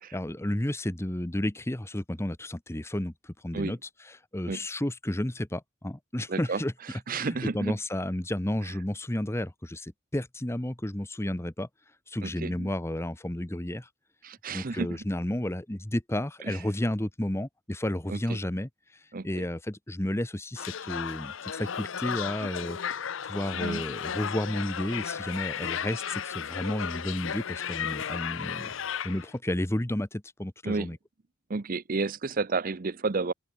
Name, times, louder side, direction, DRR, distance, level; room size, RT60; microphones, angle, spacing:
voice 1, 0.1-6.7 7.2-11.7 12.1-13.9 14.5-18.7 19.2-22.8 23.3-28.7 29.0-31.0, left 1 dB, 15° left, 1.0 m, -32 dB
voice 2, 6.3-6.6 7.1-7.7 12.2-12.7 14.2-15.0 16.5-16.6 18.1-18.4 19.1-19.4 23.5-23.8 30.6-30.9 31.5-33.3, right 4 dB, 45° right, 0.7 m, -31 dB
sound 1, 20.6-29.3, left 8 dB, 70° left, 0.6 m, -34 dB
open air
head